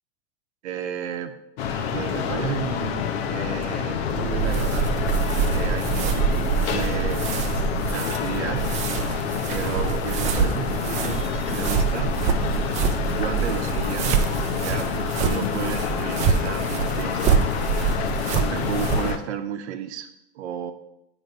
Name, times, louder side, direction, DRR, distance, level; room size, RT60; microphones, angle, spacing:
voice 1, 0.6-1.4 1.9-5.0 5.5-7.2 7.9-8.6 9.5-12.1 12.5-12.7 13.1-14.1 14.6-17.5 18.4-20.1 20.3-20.7, right 9 dB, 85° right, 7 dB, 0.9 m, -33 dB
sound 1, 1.6-19.2, left 7 dB, 65° left, 0.8 m, -28 dB
sound 2, 4.1-19.1, right 7 dB, 20° right, 0.4 m, -26 dB
9.1 x 3.3 x 5.3 m, 0.84 s
supercardioid pair, 150°, 33 cm